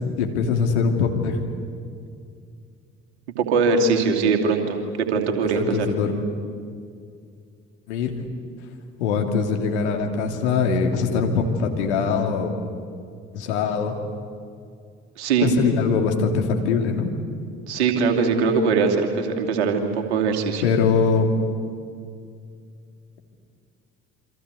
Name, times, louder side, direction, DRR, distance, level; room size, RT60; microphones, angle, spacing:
voice 1, 0.2-1.4 5.6-6.2 7.9-8.1 9.0-12.5 13.3-14.0 15.4-17.1 20.6-21.3, left 5 dB, 75° left, 3 dB, 2.8 m, -22 dB
voice 2, 3.4-5.9 15.2-15.5 17.7-20.6, right 5 dB, 75° right, 3 dB, 2.9 m, -21 dB
28.0 x 25.5 x 8.3 m, 2.3 s
figure-of-eight pair, 50°, 34 cm